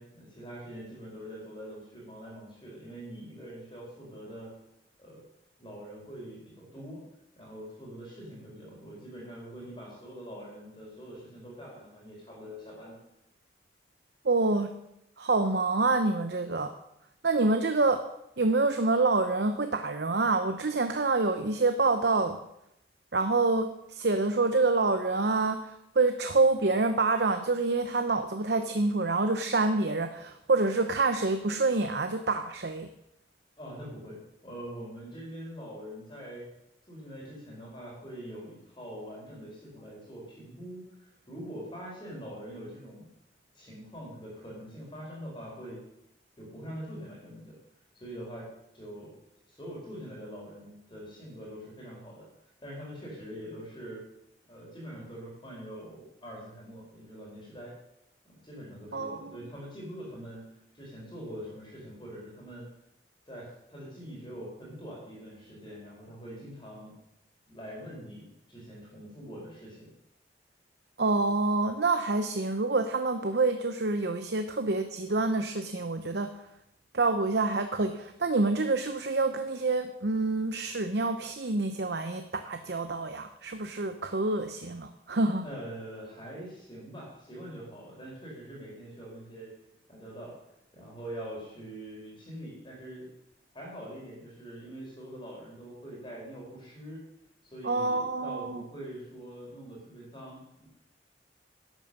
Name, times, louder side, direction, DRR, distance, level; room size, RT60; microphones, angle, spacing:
voice 1, 0.0-4.6 5.0-5.2 5.6-7.0 7.4-13.0 33.6-36.5 36.9-43.1 43.5-45.9 46.4-47.6 47.9-49.2 49.5-52.3 52.6-54.1 54.5-57.8 58.2-62.7 63.3-66.9 67.5-69.9 85.4-89.6 89.9-90.4 90.7-93.1 93.5-97.1 97.4-100.7, equal, 25° left, -3 dB, 4.7 m, -44 dB
voice 2, 14.2-14.7 15.2-16.7 17.2-18.0 18.4-22.4 23.1-32.9 58.9-59.4 71.0-76.3 76.9-85.5 97.6-98.6, right 3 dB, 70° right, 7 dB, 0.8 m, -27 dB
11.5 x 9.0 x 6.6 m, 0.82 s
head